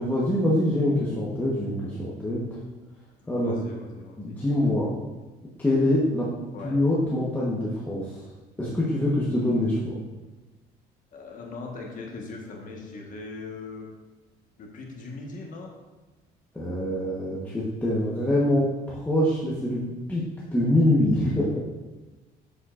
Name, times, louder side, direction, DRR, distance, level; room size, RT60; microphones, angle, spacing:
voice 1, 0.0-2.4 3.3-3.5 4.2-4.9 5.6-6.3 6.6-8.1 8.6-10.0 16.5-19.8 20.1-20.2 20.5-21.6, left 1 dB, 10° left, -7 dB, 1.1 m, -24 dB
voice 2, 3.2-4.4 6.5-6.8 11.1-13.9 14.6-15.8, left 3 dB, 50° left, 0 dB, 1.4 m, -40 dB
7.1 x 6.8 x 2.5 m, 1.2 s
cardioid pair, 110°, 17 cm